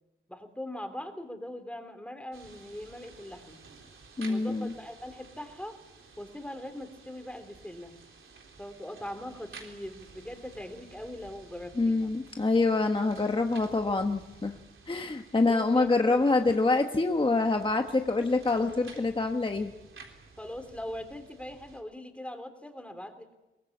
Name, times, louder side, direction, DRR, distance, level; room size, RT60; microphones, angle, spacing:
voice 1, 0.3-3.6 4.3-5.8 6.2-7.9 8.6-12.1 15.5-16.6 20.4-23.3, left 1 dB, 5° left, 7 dB, 3.3 m, -41 dB
sound 1, 2.3-21.8, right 4 dB, 80° right, 3.6 m, -53 dB
voice 2, 4.2-4.7 11.8-14.5 14.9-19.7, left 3 dB, 25° left, 5 dB, 1.2 m, -26 dB
23.0 x 19.5 x 8.5 m, 1.0 s
wide cardioid pair, 105°, 20 cm